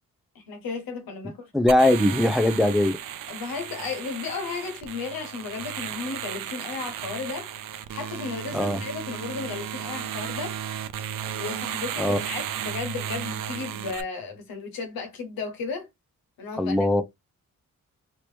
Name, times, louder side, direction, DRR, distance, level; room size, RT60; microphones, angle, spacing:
voice 1, 0.3-1.5 3.3-7.5 7.9-10.6 11.3-15.9 16.4-16.9, left 4 dB, 85° left, 1.3 m, -34 dB
voice 2, 1.5-3.0 8.5-8.8 12.0-12.2 16.6-17.0, left 1 dB, ahead, 0.5 m, -20 dB
sound 1, 1.7-14.0, right 10 dB, 70° right, 0.6 m, -34 dB
3.0 x 2.9 x 3.3 m
cardioid pair, 75°, 34 cm